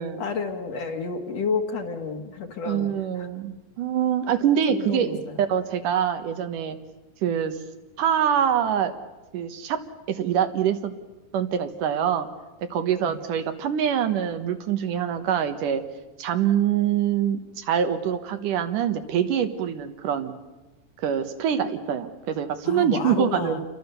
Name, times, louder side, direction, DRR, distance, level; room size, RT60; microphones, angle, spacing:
voice 1, 0.2-2.9 3.1-3.3 4.7-5.4 12.8-13.1 22.6-23.6, left 5 dB, 55° left, 5 dB, 2.5 m, -31 dB
voice 2, 2.7-5.2 5.5-6.8 7.2-7.6 8.0-8.9 9.3-9.8 10.1-11.0 11.3-12.3 12.6-15.8 16.2-20.4 21.0-23.6, right 9 dB, 70° right, 8 dB, 2.8 m, -25 dB
29.0 x 22.5 x 6.9 m, 1.1 s
omnidirectional pair, 3.9 m